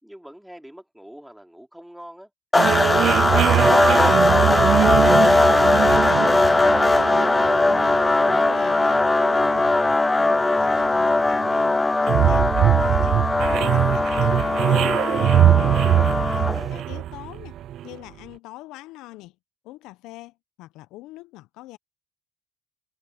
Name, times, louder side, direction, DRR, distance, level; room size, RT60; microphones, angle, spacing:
voice 1, 0.0-4.4 16.5-16.8, equal, 5° right, 3.6 m, -45 dB
sound 1, 2.5-16.7, left 2 dB, 20° left, 0.3 m, -19 dB
sound 2, 2.5-18.0, right 12 dB, 60° right, 0.4 m, -23 dB
voice 2, 4.9-9.9 10.2-13.4 13.7-15.8 16.3-17.6 17.8-19.4 19.6-21.8, left 18 dB, 70° left, 0.9 m, -43 dB
hypercardioid pair, 55°, 0 cm